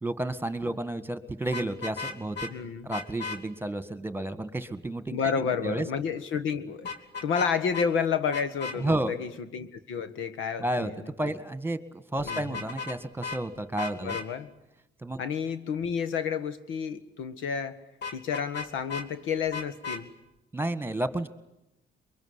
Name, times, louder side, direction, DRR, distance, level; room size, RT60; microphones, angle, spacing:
voice 1, 0.0-2.5 2.8-5.3 5.6-5.9 8.8-9.1 10.6-10.9 11.2-14.2 15.0-15.2 20.5-21.3, right 1 dB, 10° right, 12 dB, 1.7 m, -31 dB
Vehicle horn car horn honking, 1.5-2.5 2.9-3.4 6.8-7.5 7.7-7.9 8.3-8.8 12.2-13.0 13.2-13.4 13.8-14.3 18.0-19.1 19.5-20.0, left 4 dB, 60° left, 2.9 m, -35 dB
voice 2, 2.5-2.9 5.1-6.9 7.2-11.1 12.2-12.6 14.0-14.5 15.2-17.8 18.1-20.1, left 6 dB, 85° left, 11 dB, 1.7 m, -30 dB
23.5 x 22.5 x 9.8 m, 0.88 s
cardioid pair, 90°, 20 cm